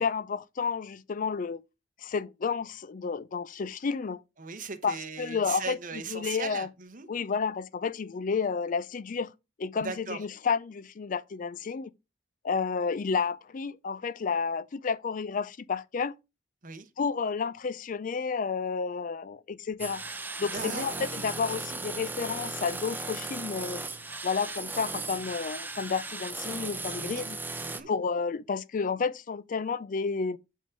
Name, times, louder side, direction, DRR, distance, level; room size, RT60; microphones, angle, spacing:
voice 1, 0.0-1.6 2.0-4.2 4.8-5.8 6.1-6.7 7.1-9.3 9.6-11.9 12.4-16.1 17.0-20.0 20.4-23.8 24.2-27.4 27.9-30.4, left 5 dB, 45° left, 0.4 m, -31 dB
voice 2, 4.4-7.1 9.8-10.2 16.6-16.9 20.5-21.1 26.9-27.2 27.6-27.9, right 5 dB, 45° right, 1.1 m, -38 dB
sound 1, 19.8-27.8, right 3 dB, 10° right, 0.7 m, -37 dB
8.4 x 3.8 x 6.3 m
head